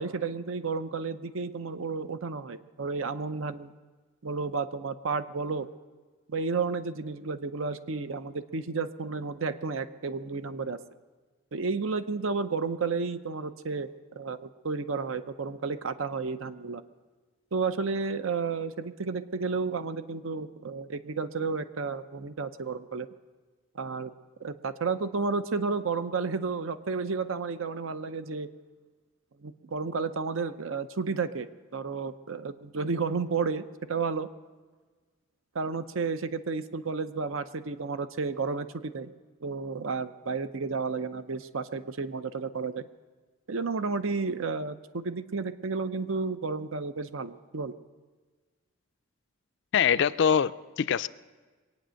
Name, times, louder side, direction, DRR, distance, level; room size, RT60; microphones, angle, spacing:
voice 1, 0.0-3.7 4.2-5.7 6.3-10.8 11.5-13.9 14.2-16.8 17.5-23.1 23.7-24.1 24.4-28.5 29.4-31.5 31.7-34.3 35.5-39.1 39.4-42.9 43.5-47.7, right 4 dB, 70° right, 12 dB, 0.7 m, -32 dB
voice 2, 49.7-51.1, left 7 dB, 55° left, 15 dB, 0.4 m, -24 dB
23.0 x 9.2 x 6.4 m, 1.4 s
head